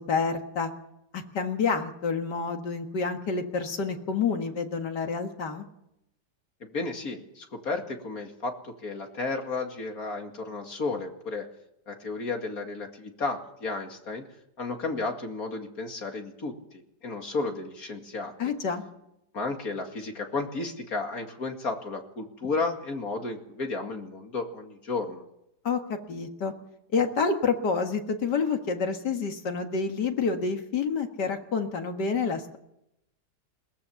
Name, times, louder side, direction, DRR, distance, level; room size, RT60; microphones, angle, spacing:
voice 1, 0.1-0.7 1.1-5.7 18.4-18.9 25.6-26.5 26.9-32.6, left 5 dB, 85° left, 5 dB, 2.4 m, -28 dB
voice 2, 6.6-11.5 11.9-14.2 14.6-18.3 19.3-25.2, left 3 dB, 60° left, 4 dB, 2.7 m, -33 dB
21.5 x 18.0 x 7.1 m, 0.84 s
omnidirectional pair, 1.8 m